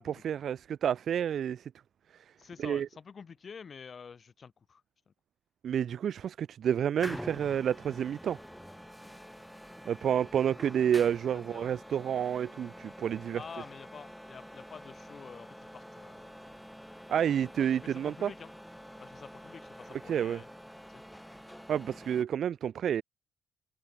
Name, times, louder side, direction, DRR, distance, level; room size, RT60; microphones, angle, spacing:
voice 1, 0.0-1.7 2.1-2.2 2.6-2.9 5.6-8.4 9.8-13.4 17.1-18.3 20.1-20.4 21.7-23.0, right 9 dB, 60° right, 1.1 m, -29 dB
voice 2, 2.4-4.8 5.1-5.2 11.3-11.7 13.3-16.4 17.3-18.5 19.0-20.5 20.9-21.0, left 6 dB, 45° left, 7.1 m, -48 dB
sound 1, 7.0-22.2, equal, ahead, 2.9 m, -47 dB
cardioid pair, 90°, 0 cm